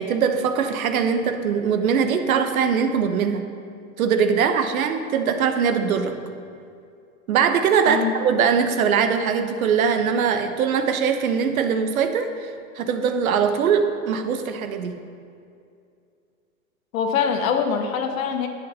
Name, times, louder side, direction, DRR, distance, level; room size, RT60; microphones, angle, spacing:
voice 1, 0.0-3.5 4.0-6.2 7.3-15.0, right 6 dB, 70° right, 8 dB, 1.1 m, -21 dB
voice 2, 16.9-18.5, left 7 dB, 65° left, 6 dB, 1.4 m, -23 dB
10.5 x 8.3 x 5.5 m, 2.5 s
hypercardioid pair, 105°, 43 cm